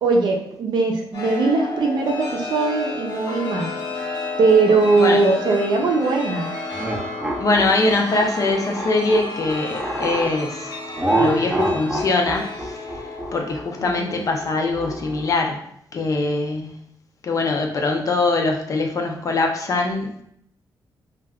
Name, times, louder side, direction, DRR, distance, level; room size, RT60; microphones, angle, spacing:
voice 1, 0.0-3.7 4.4-6.5 13.8-14.2, right 3 dB, 70° right, 1 dB, 0.5 m, -20 dB
Chime, 1.1-15.3, left 3 dB, 75° left, 1.1 m, -32 dB
sound 1, 6.7-10.3 11.0-15.5, right 1 dB, 10° right, 0.5 m, -26 dB
voice 2, 7.4-10.7 11.2-12.5 13.3-15.6 15.9-16.7 17.2-20.2, left 3 dB, 45° left, 2 dB, 0.5 m, -22 dB
2.3 x 2.1 x 3.5 m, 0.71 s
wide cardioid pair, 125°, 8 cm